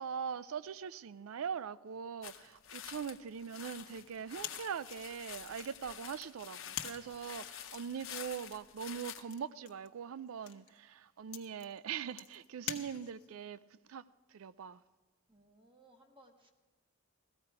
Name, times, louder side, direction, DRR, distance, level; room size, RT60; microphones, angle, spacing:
voice 1, 0.0-13.6 13.9-14.0 14.3-14.8, right 7 dB, 70° right, 0.4 m, -42 dB
sound 1, 2.2-9.2, left 10 dB, 65° left, 0.8 m, -48 dB
sound 2, 4.4-13.4, left 10 dB, 90° left, 1.0 m, -48 dB
voice 2, 15.3-16.5, right 1 dB, 25° right, 1.0 m, -62 dB
16.5 x 14.0 x 4.8 m
head